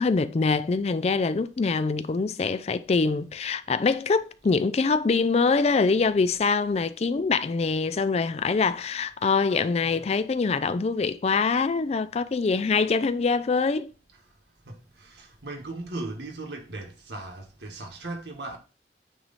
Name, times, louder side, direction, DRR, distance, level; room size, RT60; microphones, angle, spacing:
voice 1, 0.0-13.9, left 4 dB, 35° left, 0.4 m, -24 dB
voice 2, 14.6-18.6, right 2 dB, 75° right, 1.4 m, -38 dB
9.0 x 3.1 x 4.1 m
head